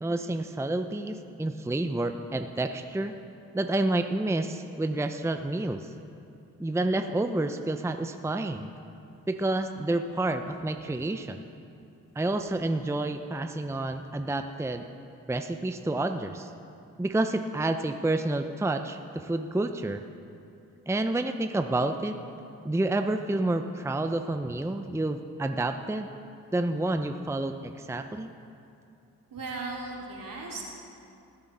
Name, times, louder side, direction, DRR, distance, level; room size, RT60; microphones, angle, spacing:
voice 1, 0.0-3.1 3.5-5.9 6.6-8.7 9.3-11.4 12.2-14.8 15.3-16.5 17.0-20.0 20.9-22.2 22.6-26.1 26.5-28.3, right 2 dB, 10° right, 7 dB, 0.6 m, -29 dB
voice 2, 29.3-30.7, right 3 dB, 70° right, -2 dB, 2.6 m, -37 dB
19.5 x 7.7 x 4.2 m, 2.6 s
supercardioid pair, 45°, 35 cm